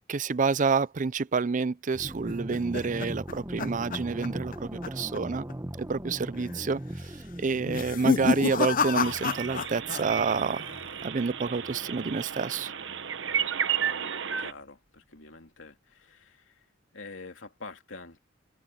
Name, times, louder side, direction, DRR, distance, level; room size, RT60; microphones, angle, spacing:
voice 1, 0.1-5.5 5.8-10.6 11.0-12.7, right 4 dB, 40° right, 0.5 m, -28 dB
sound 1, 1.9-13.4, right 1 dB, 15° right, 1.2 m, -41 dB
sound 2, 2.0-4.6 4.8-5.2 5.5-5.6 6.3-6.7 7.6-10.0 10.3-10.9, left 4 dB, 45° left, 0.7 m, -29 dB
sound 3, 9.0-14.5, right 8 dB, 70° right, 1.1 m, -33 dB
voice 2, 13.8-14.1 14.4-16.7 16.9-18.2, left 3 dB, 80° left, 2.8 m, -46 dB
head